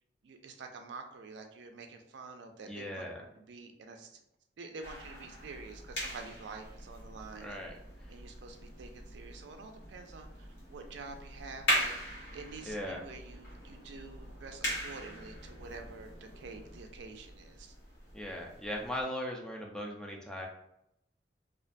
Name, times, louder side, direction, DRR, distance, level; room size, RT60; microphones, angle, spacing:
voice 1, 0.2-3.0 3.4-4.2 4.6-7.6 8.1-11.9 12.3-17.7, right 4 dB, 75° right, 5 dB, 0.4 m, -48 dB
voice 2, 2.7-3.2 7.4-7.7 8.0-8.1 12.7-13.0 18.1-20.5, equal, 5° left, -1 dB, 0.3 m, -38 dB
sound 1, 4.8-19.0, equal, 75° left, 1.1 m, -40 dB
2.4 x 2.2 x 2.5 m, 0.80 s
head